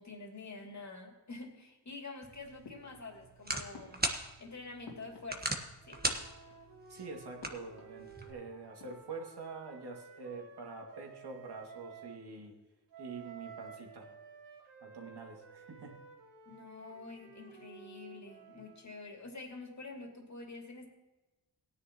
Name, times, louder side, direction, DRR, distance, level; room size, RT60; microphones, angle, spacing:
voice 1, 0.0-4.0 4.4-5.6 5.8-6.0 16.4-20.9, left 3 dB, 40° left, 2 dB, 2.8 m, -47 dB
sound 1, 2.2-8.3, right 2 dB, 20° right, 1.5 m, -40 dB
sound 2, 2.6-3.4 3.7-5.7 5.9-6.8 7.4-8.4 8.6-9.2, left 3 dB, 85° left, 2.8 m, -55 dB
Wind instrument woodwind instrument, 5.8-12.2 12.9-18.9, right 5 dB, 85° right, 2.9 m, -54 dB
voice 2, 6.9-12.5 13.0-14.1 14.8-16.0, right 4 dB, 70° right, 1 dB, 2.4 m, -46 dB
17.5 x 9.9 x 3.0 m, 1.1 s
cardioid pair, 75°, 41 cm